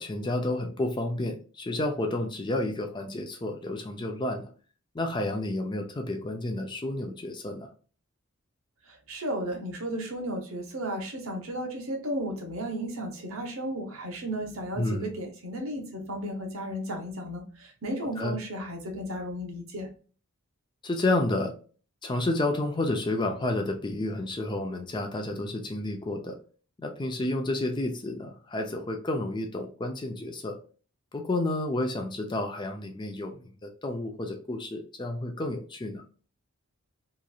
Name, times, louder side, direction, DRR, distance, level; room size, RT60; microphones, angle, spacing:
voice 1, 0.0-4.4 4.9-7.7 14.8-15.1 18.2-18.4 20.8-21.5 22.0-26.4 26.8-30.6 31.1-36.0, left 2 dB, 20° left, 5 dB, 0.4 m, -30 dB
voice 2, 8.9-19.9, right 1 dB, 75° right, 2 dB, 0.9 m, -34 dB
3.0 x 2.5 x 2.3 m, 0.39 s
head